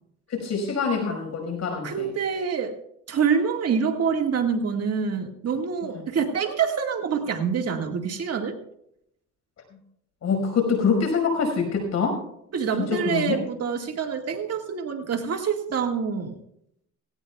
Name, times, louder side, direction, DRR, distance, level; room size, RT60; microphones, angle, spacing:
voice 1, 0.3-2.1 10.2-12.2 12.9-13.4, left 5 dB, 60° left, 3 dB, 5.4 m, -25 dB
voice 2, 1.8-2.7 3.1-8.6 12.5-16.4, right 6 dB, 55° right, 4 dB, 1.9 m, -26 dB
18.0 x 17.0 x 2.4 m, 0.75 s
cardioid pair, 90°, 30 cm